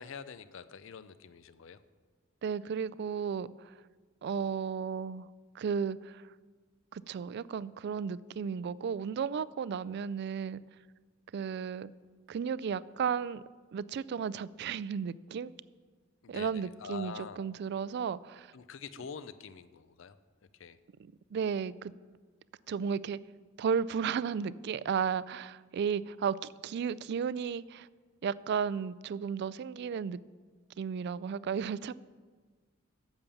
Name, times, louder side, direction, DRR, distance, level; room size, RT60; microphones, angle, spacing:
voice 1, 0.0-1.8 16.2-17.4 18.5-20.2 20.5-20.8, left 6 dB, 70° left, 14 dB, 0.5 m, -45 dB
voice 2, 2.4-3.7 4.2-5.3 5.5-6.3 6.9-10.6 11.3-11.9 12.3-13.4 13.7-15.5 16.3-18.5 21.0-21.9 22.7-23.2 23.6-26.4 26.6-27.9 28.2-30.2 30.8-31.9, right 7 dB, 55° right, 19 dB, 0.3 m, -34 dB
10.5 x 7.2 x 7.0 m, 1.5 s
head